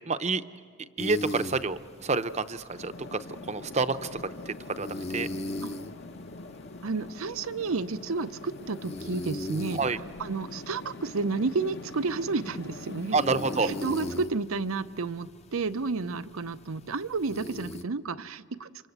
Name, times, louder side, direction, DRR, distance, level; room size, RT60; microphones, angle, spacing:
voice 1, 0.1-0.4 1.0-5.3 9.7-10.0 13.1-13.7, right 4 dB, 35° right, 12 dB, 0.7 m, -29 dB
sound 1, 1.0-17.8, left 2 dB, 30° left, 0.7 m, -41 dB
sound 2, 2.7-14.3, left 2 dB, 55° left, 1.0 m, -44 dB
voice 2, 6.8-9.8 10.2-13.2 13.6-18.7, right 4 dB, 85° right, 13 dB, 0.7 m, -31 dB
28.5 x 25.5 x 8.1 m, 2.1 s
head